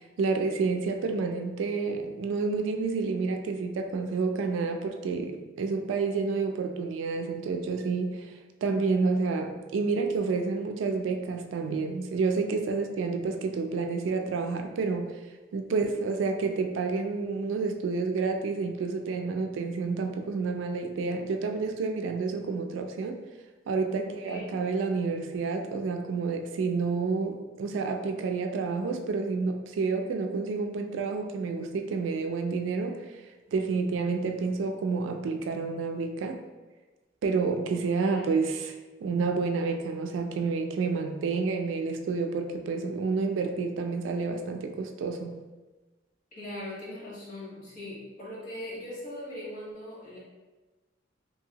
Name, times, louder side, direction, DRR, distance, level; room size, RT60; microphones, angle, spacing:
voice 1, 0.2-8.3 8.6-15.2 15.5-23.2 23.7-33.1 33.5-36.4 37.2-45.4, right 4 dB, 75° right, 5 dB, 0.3 m, -29 dB
voice 2, 24.0-24.6 38.0-38.4 46.3-50.2, left 1 dB, 45° left, -6 dB, 1.0 m, -40 dB
2.8 x 2.7 x 2.7 m, 1.2 s
head